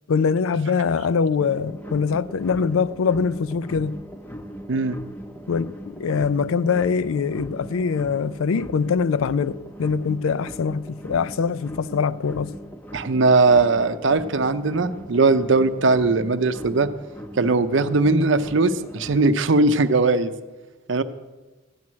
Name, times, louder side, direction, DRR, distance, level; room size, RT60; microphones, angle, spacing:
voice 1, 0.1-4.0 5.5-12.5, left 5 dB, 85° left, 0.4 m, -23 dB
sound 1, 1.4-19.3, equal, 10° left, 0.5 m, -39 dB
voice 2, 12.9-16.9 17.4-20.3 20.9-21.0, right 3 dB, 65° right, 0.6 m, -19 dB
13.5 x 9.7 x 6.2 m
head